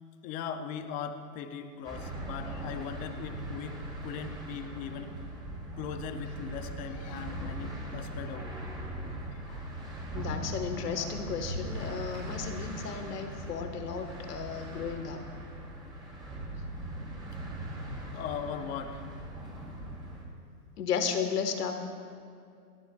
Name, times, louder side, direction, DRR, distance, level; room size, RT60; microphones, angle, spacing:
voice 1, 0.2-5.2 5.8-8.9 9.3-9.7 12.1-12.2 17.9-19.0, left 7 dB, 20° left, 8 dB, 0.5 m, -40 dB
sound 1, 1.8-20.2, right 1 dB, 10° right, 3.0 m, -40 dB
voice 2, 10.1-15.2 20.8-21.8, left 6 dB, 75° left, 6 dB, 1.7 m, -34 dB
28.0 x 10.5 x 2.4 m, 2.4 s
hypercardioid pair, 130°, 47 cm